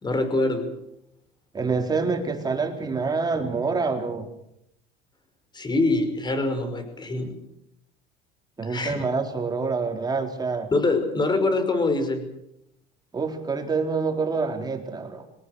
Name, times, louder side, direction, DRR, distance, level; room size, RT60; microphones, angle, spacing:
voice 1, 0.0-0.7 5.5-7.4 8.6-8.9 10.7-12.2, left 2 dB, 20° left, 8 dB, 5.6 m, -24 dB
voice 2, 1.5-4.3 8.6-10.7 13.1-15.2, right 4 dB, 20° right, 4 dB, 4.2 m, -26 dB
23.5 x 18.5 x 8.1 m, 0.80 s
cardioid pair, 125°, 19 cm